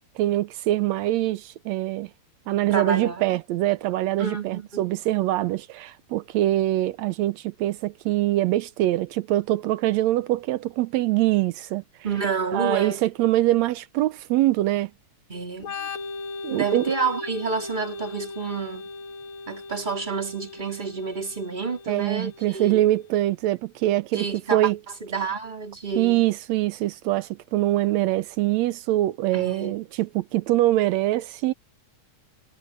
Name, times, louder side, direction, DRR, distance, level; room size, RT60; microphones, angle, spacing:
voice 1, 0.2-2.1 2.5-11.8 12.5-14.9 16.4-16.9 21.9-24.8 26.0-31.5, right 15 dB, 75° right, 1.8 m, -24 dB
voice 2, 2.7-3.2 4.2-4.8 12.0-13.0 15.3-15.7 16.5-18.8 19.5-22.8 24.1-24.7 25.0-26.3 29.3-29.8, right 5 dB, 15° right, 3.6 m, -29 dB
Organ, 15.6-23.1, left 4 dB, 70° left, 3.1 m, -38 dB
omnidirectional pair, 3.4 m